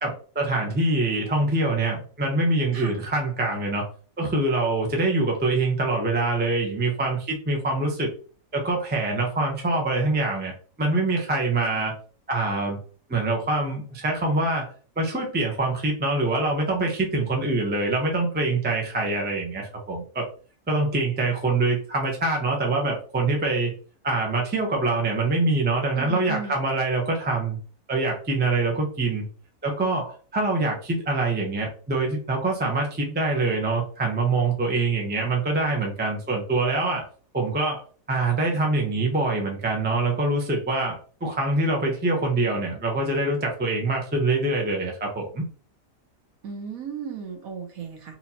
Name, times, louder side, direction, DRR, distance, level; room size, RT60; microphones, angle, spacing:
voice 1, 0.0-3.8 4.2-8.1 8.5-10.5 10.8-11.9 12.3-12.8 13.1-14.7 15.0-20.2 20.7-23.7 24.0-27.6 27.9-29.3 29.6-37.1 37.3-45.4, right 2 dB, 10° right, 0 dB, 0.4 m, -24 dB
voice 2, 25.9-26.6 46.4-48.2, right 6 dB, 60° right, 3 dB, 1.1 m, -35 dB
4.3 x 2.8 x 2.8 m, 0.40 s
omnidirectional pair, 1.8 m